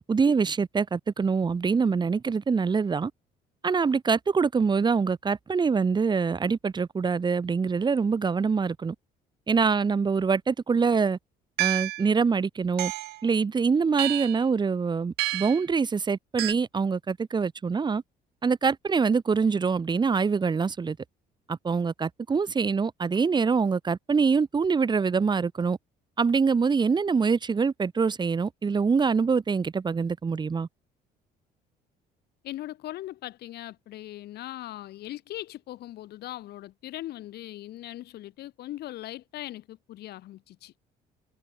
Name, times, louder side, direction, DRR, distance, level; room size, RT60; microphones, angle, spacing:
voice 1, 0.0-3.1 3.6-8.9 9.5-11.2 11.6-12.9 13.2-18.0 18.4-21.0 21.5-25.8 26.2-30.7, right 5 dB, 25° right, 1.5 m, -24 dB
sound 1, 11.6-12.1 12.8-13.2 14.0-14.4 15.2-15.6 16.4-16.5, right 19 dB, 80° right, 0.6 m, -29 dB
voice 2, 32.4-40.7, left 14 dB, 70° left, 4.4 m, -40 dB
cardioid pair, 110°, 17 cm